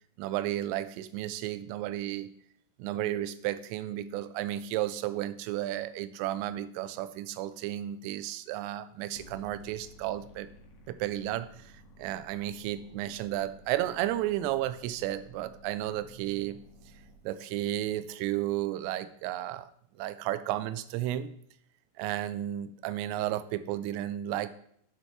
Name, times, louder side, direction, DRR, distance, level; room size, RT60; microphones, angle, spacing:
voice 1, 0.2-2.3 2.8-10.5 10.9-11.7 12.0-16.6 17.2-19.7 20.0-21.3 22.0-24.5, right 13 dB, 85° right, 13 dB, 3.1 m, -33 dB
sound 1, 9.2-17.2, equal, 70° left, 3.2 m, -55 dB
10.5 x 8.3 x 3.2 m, 0.68 s
omnidirectional pair, 5.7 m